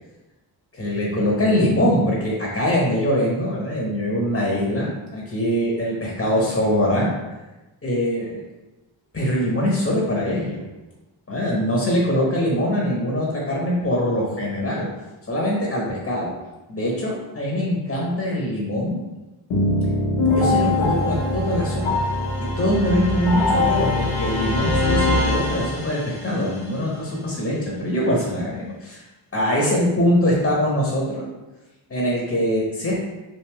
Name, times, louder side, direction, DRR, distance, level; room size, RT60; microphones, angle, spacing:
voice 1, 0.7-7.1 7.8-8.4 9.1-10.6 11.3-14.9 15.3-16.3 16.7-19.0 20.3-21.7 22.6-29.0 29.3-31.2 31.9-33.0, equal, 25° left, -4 dB, 1.0 m, -23 dB
sound 1, 19.5-26.3, left 2 dB, 85° left, 1.0 m, -22 dB
3.5 x 2.6 x 2.9 m, 1.1 s
supercardioid pair, 55°, 48 cm